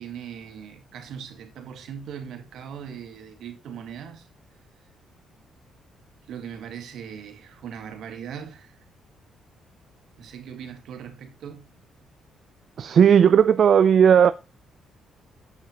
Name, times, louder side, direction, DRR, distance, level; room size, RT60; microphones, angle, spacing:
voice 1, 0.0-4.3 6.3-8.8 10.2-11.8, right 8 dB, 75° right, 2.3 m, -39 dB
voice 2, 12.8-14.3, right 8 dB, 55° right, 0.5 m, -15 dB
8.0 x 5.8 x 5.1 m
cardioid pair, 90°, 0 cm